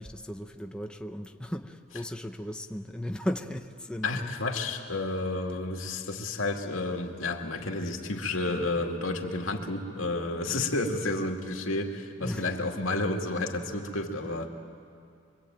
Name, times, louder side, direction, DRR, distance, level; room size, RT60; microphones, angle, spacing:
voice 1, 0.0-4.3 12.2-12.4, equal, 5° left, 0.8 m, -36 dB
voice 2, 4.0-14.5, left 2 dB, 90° left, 2.4 m, -31 dB
26.5 x 23.0 x 9.1 m
head